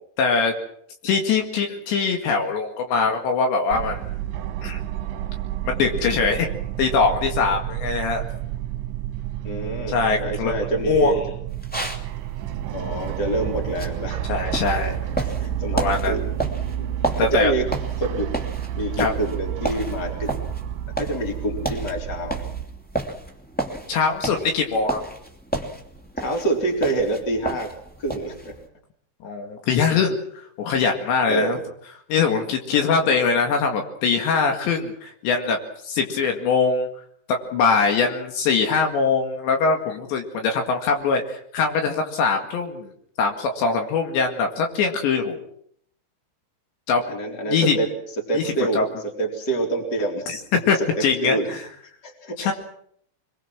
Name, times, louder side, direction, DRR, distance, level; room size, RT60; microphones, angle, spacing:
voice 1, 0.2-0.5 1.0-4.0 4.6-4.8 5.6-6.5 6.8-8.2 9.9-10.5 10.8-11.2 14.3-15.0 15.7-16.1 17.2-17.5 19.0-19.1 23.9-25.1 29.2-30.2 30.6-31.6 32.1-35.6 35.8-36.9 37.3-42.9 43.2-45.4 46.9-47.0 47.5-47.8 48.3-48.9 50.7-51.7 52.5-52.6, left 5 dB, 70° left, 3 dB, 4.2 m, -22 dB
sound 1, 3.7-22.6, right 11 dB, 75° right, 3.1 m, -30 dB
voice 2, 9.4-11.2 12.7-14.4 15.2-16.2 16.7-16.9 17.2-17.7 18.0-18.3 18.7-20.3 21.0-22.4 26.2-27.7 28.0-28.5 29.7-29.8 31.3-31.6 32.7-33.1 47.1-47.9 48.3-50.3 50.7-50.9 51.2-51.5 52.0-52.5, right 2 dB, 25° left, 2 dB, 4.0 m, -26 dB
sound 2, 11.5-28.7, right 2 dB, 5° left, 1.3 m, -33 dB
26.0 x 22.5 x 6.1 m, 0.67 s
omnidirectional pair, 5.5 m